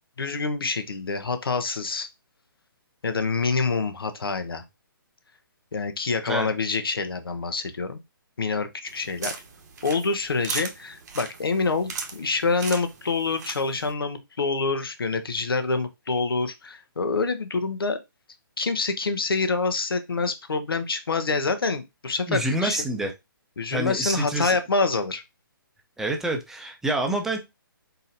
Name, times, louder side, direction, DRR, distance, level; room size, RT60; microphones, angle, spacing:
voice 1, 0.2-2.1 3.0-4.6 5.7-8.0 8.4-9.3 9.8-18.0 18.6-22.9 23.6-25.2, left 4 dB, 90° left, 9 dB, 0.9 m, -26 dB
sound 1, 8.9-13.9, right 5 dB, 50° right, 0.9 m, -38 dB
voice 2, 22.3-23.1 23.7-24.6 26.0-27.4, right 2 dB, 5° right, 2 dB, 0.5 m, -27 dB
4.3 x 4.0 x 2.7 m, 0.22 s
hypercardioid pair, 150°, 12 cm